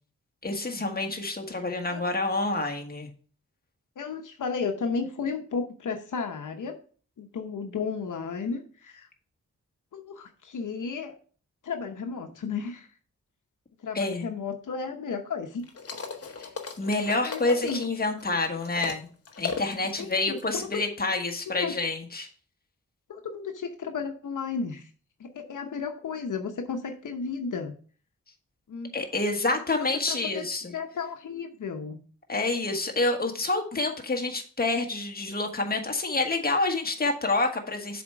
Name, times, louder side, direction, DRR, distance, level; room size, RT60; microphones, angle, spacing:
voice 1, 0.4-3.1 13.9-14.3 16.4-16.5 16.8-19.1 19.4-22.3 28.9-30.6 32.3-38.0, left 2 dB, 30° left, 2 dB, 1.5 m, -28 dB
voice 2, 4.0-6.8 7.2-9.1 9.9-11.2 11.6-12.9 13.8-15.6 17.2-17.8 20.0-20.8 21.5-21.7 23.1-24.9 25.2-27.7 28.7-28.9 29.7-29.8 30.1-32.0, left 5 dB, 80° left, 5 dB, 0.9 m, -33 dB
sound 1, 15.6-19.0 19.3-20.7, left 5 dB, 50° left, 1.0 m, -37 dB
7.2 x 4.4 x 4.7 m, 0.42 s
wide cardioid pair, 80°, 30 cm